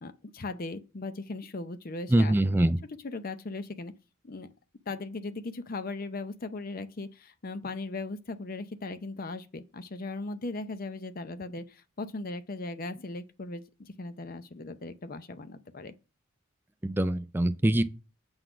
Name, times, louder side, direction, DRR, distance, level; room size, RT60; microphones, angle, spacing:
voice 1, 0.0-2.6 3.0-3.9 4.2-4.5 4.9-15.9, left 3 dB, 45° left, 0.6 m, -38 dB
voice 2, 2.1-2.8 16.8-17.8, right 1 dB, 10° right, 0.4 m, -24 dB
7.9 x 4.0 x 6.0 m
head